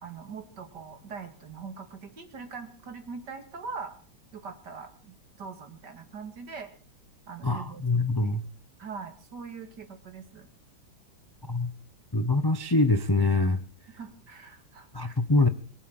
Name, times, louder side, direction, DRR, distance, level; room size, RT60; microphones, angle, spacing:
voice 1, 0.0-3.9 4.3-6.7 7.3-8.4 8.8-10.5 14.0-15.2, right 5 dB, 60° right, 7 dB, 2.8 m, -42 dB
voice 2, 7.4-8.5 11.5-11.7 12.1-13.6 14.9-15.5, left 2 dB, 30° left, 10 dB, 0.4 m, -24 dB
22.5 x 8.3 x 7.2 m, 0.43 s
omnidirectional pair, 2.1 m